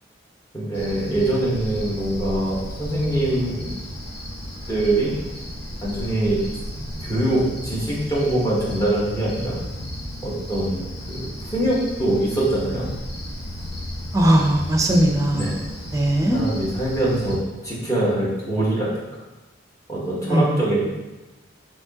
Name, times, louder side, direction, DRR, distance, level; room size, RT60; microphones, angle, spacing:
voice 1, 0.5-3.7 4.7-5.1 5.8-6.4 7.0-9.6 10.2-12.9 15.3-15.5 16.3-17.4 17.6-19.0 19.9-20.8, right 1 dB, 20° left, -6 dB, 1.0 m, -23 dB
Cricket, 0.7-17.4, equal, 60° left, 0.9 m, -34 dB
voice 2, 14.1-15.6 15.9-16.4 20.3-20.6, right 1 dB, 20° right, 1 dB, 0.5 m, -19 dB
5.9 x 2.9 x 2.8 m, 1.1 s
head